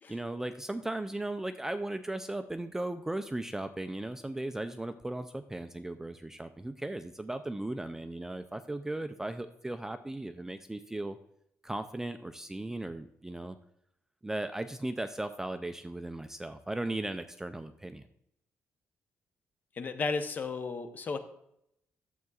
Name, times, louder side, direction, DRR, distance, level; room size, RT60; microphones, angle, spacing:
voice 1, 0.1-11.2 11.6-13.6 14.2-18.1, right 1 dB, 10° right, 9 dB, 0.3 m, -37 dB
voice 2, 19.8-21.2, left 4 dB, 35° left, 8 dB, 0.7 m, -33 dB
12.0 x 7.6 x 2.4 m, 0.77 s
cardioid pair, 140°, 5 cm